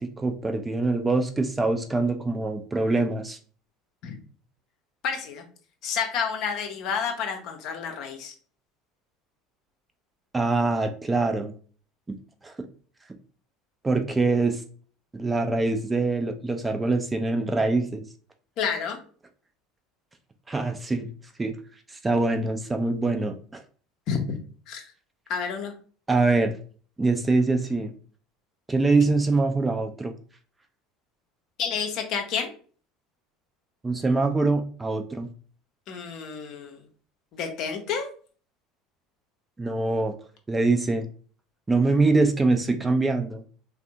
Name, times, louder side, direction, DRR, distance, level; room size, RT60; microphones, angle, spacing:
voice 1, 0.0-3.4 10.3-11.5 12.1-12.2 12.4-12.5 13.8-14.6 15.1-18.0 20.5-21.1 21.4-21.6 21.9-23.6 26.1-26.6 27.0-27.9 28.7-30.1 33.8-35.3 39.6-40.1 40.5-41.1 41.7-43.4, right 3 dB, 15° right, 6 dB, 0.4 m, -24 dB
voice 2, 5.0-5.4 5.8-8.3 18.6-19.0 24.1-24.4 24.7-24.8 25.3-25.7 31.6-32.5 35.9-36.8 37.3-38.1, left 6 dB, 50° left, 4 dB, 0.6 m, -29 dB
3.3 x 2.1 x 2.6 m, 0.41 s
figure-of-eight pair, 65°, 0 cm